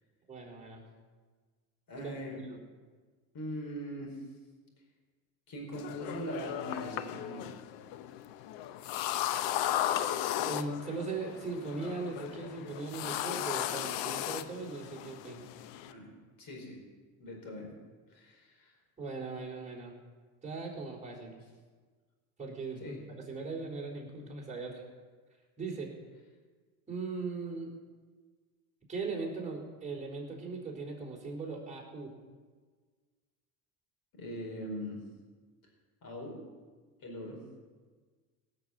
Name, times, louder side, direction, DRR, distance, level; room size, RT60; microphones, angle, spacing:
voice 1, 0.3-0.8 2.0-2.2 2.5-2.6 10.3-15.4 19.0-19.9 20.4-21.4 22.4-24.8 25.6-25.9 26.9-27.7 28.9-32.1, right 3 dB, 15° right, -3 dB, 4.3 m, -39 dB
voice 2, 1.9-2.4 3.3-4.2 5.5-7.5 15.8-16.1 16.4-16.8 17.2-17.7 18.1-18.7 22.8-23.0 34.1-35.0 36.0-36.4 37.0-37.4, equal, 45° left, 1 dB, 4.8 m, -41 dB
sound 1, 5.7-15.9, left 12 dB, 70° left, 0.9 m, -36 dB
17.5 x 6.7 x 7.8 m, 1.5 s
supercardioid pair, 100°, 45 cm